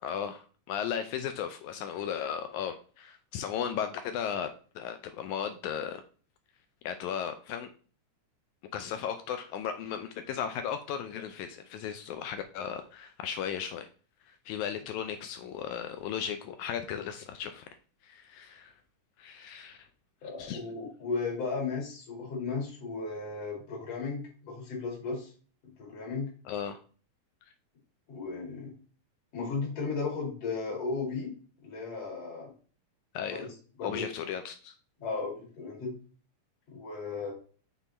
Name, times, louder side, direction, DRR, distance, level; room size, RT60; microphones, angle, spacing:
voice 1, 0.0-6.0 6.8-7.7 8.7-13.9 14.3-17.7 18.0-18.7 19.2-19.8 20.4-20.6 26.5-26.8 33.1-33.5 33.8-34.7, left 8 dB, 80° left, 8 dB, 1.9 m, -36 dB
voice 2, 20.2-25.3 25.6-26.3 28.1-28.7 29.3-31.3 31.6-32.5 33.3-33.4 33.8-34.1 35.0-35.9 36.7-37.3, left 4 dB, 55° left, -2 dB, 3.3 m, -35 dB
6.1 x 3.8 x 4.1 m, 0.40 s
omnidirectional pair, 3.4 m